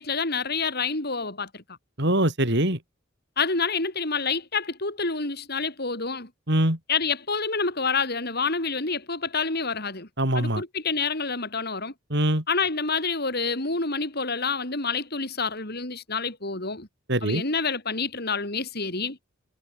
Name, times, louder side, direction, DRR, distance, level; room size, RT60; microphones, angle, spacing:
voice 1, 0.0-1.6 3.4-6.3 6.9-10.1 10.3-11.9 12.5-16.9 17.2-19.2, left 4 dB, 50° left, 4.8 m, -28 dB
voice 2, 2.0-2.8 6.5-6.8 10.2-10.6 12.1-12.4 17.1-17.4, right 1 dB, 55° right, 5.8 m, -23 dB
head